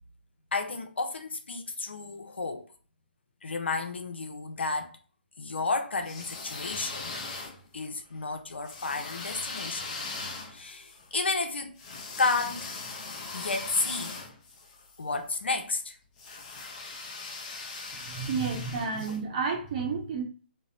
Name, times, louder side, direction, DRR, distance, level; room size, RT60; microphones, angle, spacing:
voice 1, 0.5-2.7 3.4-5.0 5.4-7.1 7.7-9.9 10.5-11.7 12.2-12.7 13.3-14.2 15.0-16.0, left 3 dB, 90° left, 0.6 m, -31 dB
sound 1, 6.0-7.9 8.6-15.0 16.2-19.2, left 3 dB, 35° left, 0.6 m, -40 dB
voice 2, 18.0-20.2, right 5 dB, 40° right, 0.7 m, -31 dB
2.8 x 2.0 x 2.5 m
hypercardioid pair, 145°, 6 cm